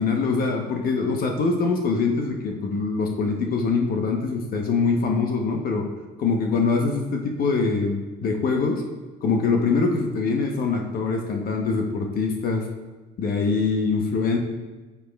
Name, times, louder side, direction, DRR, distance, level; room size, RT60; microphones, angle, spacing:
voice 1, 0.0-5.9 6.2-8.8 9.2-12.7 13.2-14.4, left 4 dB, 60° left, 2 dB, 0.9 m, -23 dB
9.1 x 6.9 x 2.3 m, 1.2 s
cardioid pair, 110°, 17 cm